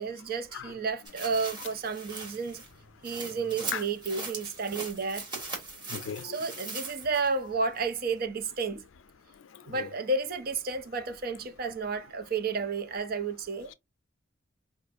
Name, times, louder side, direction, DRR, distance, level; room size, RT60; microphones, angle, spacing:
voice 1, 0.0-2.6 3.0-5.3 6.2-8.8 9.6-13.7, right 4 dB, 50° right, 0.5 m, -32 dB
sound 1, 1.1-7.4 7.8-7.9, right 3 dB, 25° right, 1.4 m, -40 dB
voice 2, 5.9-6.3 9.7-9.9, left 7 dB, 80° left, 0.4 m, -36 dB
4.9 x 2.5 x 2.4 m
head